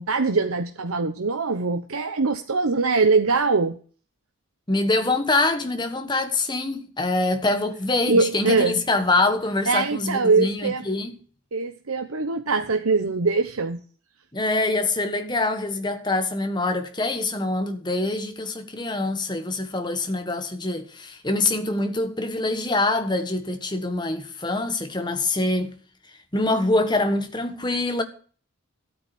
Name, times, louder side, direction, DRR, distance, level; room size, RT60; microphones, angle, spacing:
voice 1, 0.0-3.8 8.1-8.8 9.7-10.8 11.5-13.8, right 4 dB, 85° right, 0.9 m, -22 dB
voice 2, 4.7-11.2 14.3-25.7 26.3-28.0, left 2 dB, 20° left, 1.5 m, -24 dB
13.5 x 8.8 x 6.0 m
head